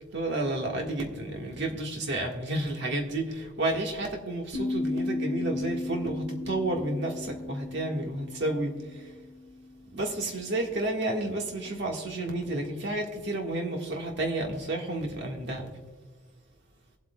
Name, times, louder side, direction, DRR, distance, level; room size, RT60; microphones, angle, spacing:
voice 1, 0.1-9.1 9.9-15.7, right 2 dB, 60° right, 1 dB, 1.7 m, -31 dB
sound 1, 4.5-9.7, left 2 dB, 80° right, 2.9 m, -35 dB
22.5 x 8.0 x 2.3 m, 1.4 s
head